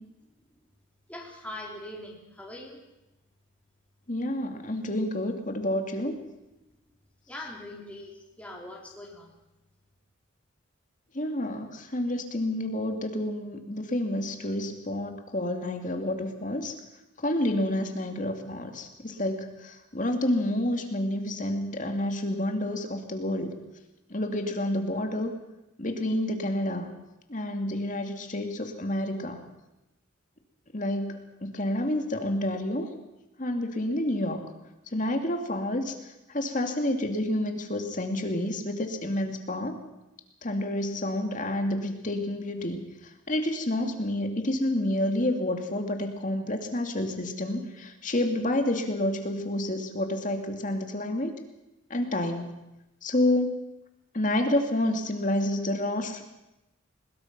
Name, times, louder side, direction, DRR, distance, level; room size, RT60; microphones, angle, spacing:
voice 1, 1.1-2.8 7.3-9.3, left 1 dB, 5° left, -2 dB, 4.1 m, -42 dB
voice 2, 4.1-6.1 11.1-16.7 17.2-23.5 24.1-25.3 25.8-26.9 27.3-29.4 30.7-31.1 31.4-32.9 33.4-34.4 34.9-35.9 36.3-39.8 40.4-42.8 43.3-51.3 51.9-52.6 53.0-53.6 54.1-56.2, left 1 dB, 40° left, 5 dB, 2.3 m, -29 dB
21.0 x 21.0 x 6.0 m, 0.96 s
head